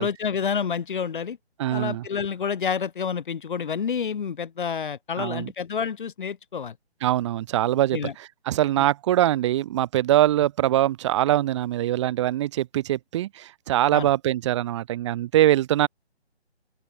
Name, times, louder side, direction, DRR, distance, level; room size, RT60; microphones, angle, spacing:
voice 1, 0.0-1.4 1.7-6.7 7.9-8.1 13.9-14.1, left 6 dB, 45° left, 3.1 m, -28 dB
voice 2, 1.6-2.0 5.2-5.5 7.0-15.9, right 13 dB, 25° right, 3.7 m, -23 dB
open air
figure-of-eight pair, 155°, 33 cm